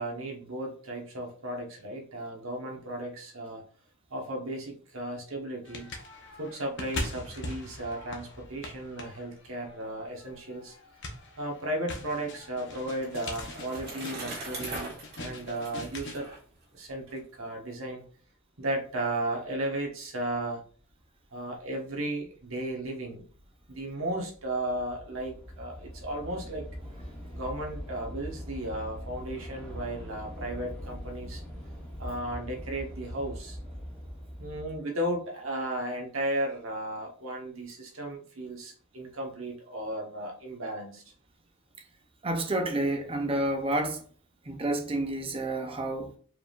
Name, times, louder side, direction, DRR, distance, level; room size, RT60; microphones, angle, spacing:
voice 1, 0.0-3.6 4.1-5.9 6.4-10.7 11.4-16.3 16.7-18.0 18.6-20.6 21.3-23.2 23.7-26.6 27.3-31.4 32.0-33.6 34.4-41.0, right 1 dB, 70° right, 1.2 m, -35 dB
sound 1, 5.6-16.3, left 2 dB, 55° left, 0.8 m, -41 dB
Bicycle, 12.4-17.2, right 2 dB, 50° right, 1.5 m, -42 dB
Train / Subway metro underground, 20.8-20.9 21.7-21.9 22.2-34.8, equal, 5° left, 1.0 m, -42 dB
voice 2, 42.2-44.0 44.5-46.1, right 1 dB, 25° right, 0.6 m, -29 dB
4.7 x 3.5 x 2.4 m
head